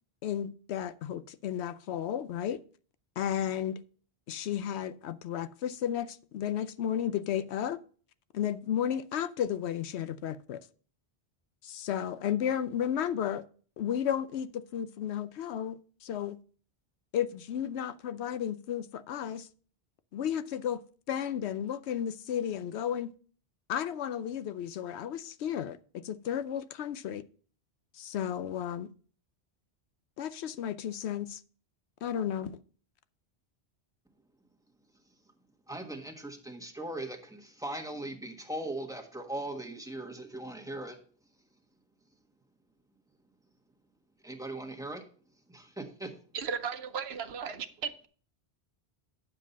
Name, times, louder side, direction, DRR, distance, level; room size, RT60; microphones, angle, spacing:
voice 1, 0.2-2.6 3.2-3.8 4.3-7.8 8.3-10.6 11.6-13.4 13.8-16.4 17.1-19.5 20.1-20.8 21.1-23.1 23.7-27.2 27.9-28.9 30.2-31.4 32.0-32.6, left 9 dB, 80° left, 0.9 m, -33 dB
voice 2, 35.7-41.0 44.2-45.0 45.5-46.1, right 1 dB, 5° right, 1.4 m, -39 dB
voice 3, 46.3-48.1, right 6 dB, 70° right, 1.0 m, -36 dB
9.2 x 7.4 x 4.1 m
omnidirectional pair, 1.1 m